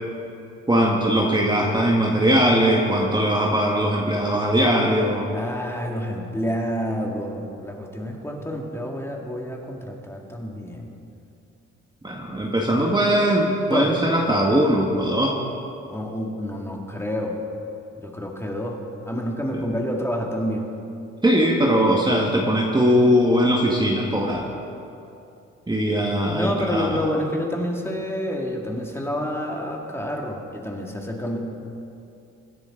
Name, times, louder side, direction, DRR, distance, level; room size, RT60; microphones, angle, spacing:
voice 1, 0.7-5.3 12.0-15.3 19.5-19.6 21.2-24.5 25.7-27.0, equal, 15° right, -2 dB, 1.8 m, -20 dB
voice 2, 5.3-10.9 13.7-13.9 15.9-17.4 18.0-20.7 25.9-31.4, equal, 10° left, 0 dB, 2.3 m, -28 dB
24.5 x 10.5 x 3.9 m, 2.6 s
cardioid pair, 85°, 29 cm